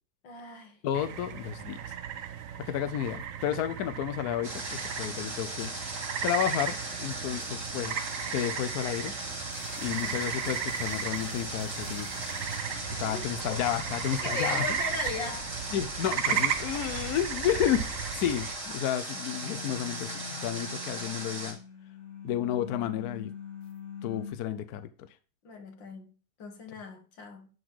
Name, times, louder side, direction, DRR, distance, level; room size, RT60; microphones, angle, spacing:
voice 1, 0.2-0.8 7.2-7.4 9.9-10.2 13.0-13.6 14.0-15.5 25.4-26.1 26.4-27.5, left 5 dB, 85° left, 2.2 m, -39 dB
voice 2, 0.8-1.8 2.6-8.0 8.3-9.1 9.8-12.4 13.0-14.6 15.7-17.9 18.1-21.6 22.2-23.3 24.0-25.1, left 11 dB, 65° left, 1.0 m, -31 dB
sound 1, 0.9-18.5, right 8 dB, 60° right, 0.9 m, -35 dB
Water, 4.4-21.5, right 2 dB, 40° right, 3.1 m, -38 dB
sound 2, 9.5-19.0 19.3-24.3, left 5 dB, 40° left, 1.5 m, -46 dB
11.0 x 4.1 x 4.7 m
omnidirectional pair, 2.0 m